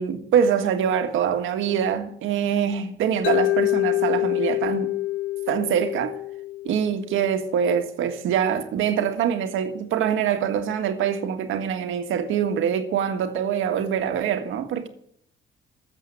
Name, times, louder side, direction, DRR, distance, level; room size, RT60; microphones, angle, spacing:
voice 1, 0.0-4.9 5.5-6.2 6.6-14.9, right 8 dB, 85° right, 1.6 m, -24 dB
Mallet percussion, 3.2-7.4, left 17 dB, 80° left, 0.6 m, -26 dB
14.0 x 7.8 x 9.9 m
cardioid pair, 90°, 20 cm